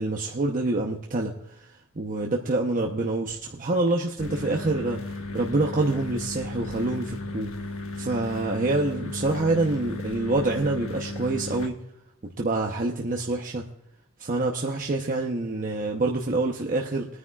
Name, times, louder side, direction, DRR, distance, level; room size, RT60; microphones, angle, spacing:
voice 1, 0.0-1.3 2.0-5.0 5.3-7.5 8.0-11.7 12.4-13.7 14.2-17.1, right 2 dB, 40° right, 0 dB, 0.8 m, -26 dB
sound 1, 4.2-11.7, left 2 dB, 65° left, 1.2 m, -35 dB
21.0 x 9.7 x 2.4 m, 0.78 s
head